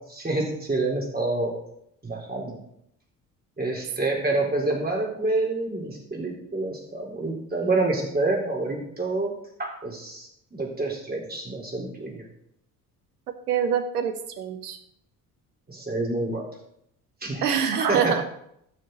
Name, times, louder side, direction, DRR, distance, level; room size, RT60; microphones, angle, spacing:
voice 1, 0.1-1.5 2.0-2.6 3.6-9.3 9.6-12.2 15.7-16.4 17.2-18.2, right 2 dB, 20° right, -2 dB, 3.8 m, -28 dB
voice 2, 13.5-14.8 17.4-18.2, right 8 dB, 75° right, 9 dB, 1.1 m, -25 dB
15.0 x 6.6 x 3.9 m, 0.73 s
figure-of-eight pair, 50°, 46 cm